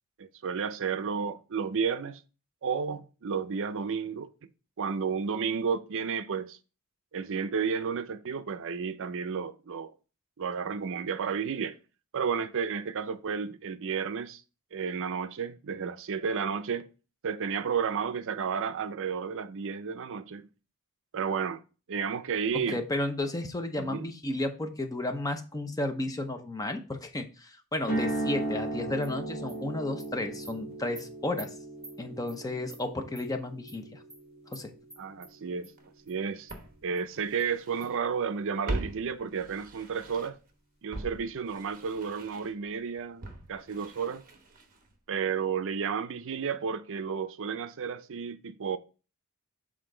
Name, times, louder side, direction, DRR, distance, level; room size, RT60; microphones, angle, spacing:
voice 1, 0.2-2.2 2.6-4.3 4.8-6.6 7.1-9.9 10.4-11.8 12.1-14.4 14.7-16.9 17.2-20.5 21.1-21.6 21.9-22.8 23.8-24.1 35.0-35.7 36.1-36.5 36.8-40.4 40.8-43.2 43.5-44.2 45.1-48.8, right 6 dB, 60° right, 0.5 m, -32 dB
voice 2, 22.5-31.5 32.0-34.0 34.5-34.7, left 2 dB, 15° left, 0.7 m, -33 dB
sound 1, 27.8-35.8, right 1 dB, 45° left, 1.7 m, -37 dB
Animal, 29.0-29.1 29.5-29.6 30.0-30.1 30.4-30.5 31.0-31.1 31.4-31.5 31.8-32.0 32.3-32.4 32.7-32.8 33.1-33.3 33.7-33.8 34.1-34.2 34.5-34.6 34.9-35.3 35.6-35.7 36.1-36.2 36.5-36.6 37.0-37.1 37.4-37.5 37.8-37.9, right 1 dB, 5° right, 3.3 m, -47 dB
Walk footsteps, 35.8-35.9 36.5-38.0 38.2-40.5 40.9-45.0 45.2-45.3, right 2 dB, 40° right, 1.1 m, -41 dB
6.6 x 3.8 x 3.8 m
head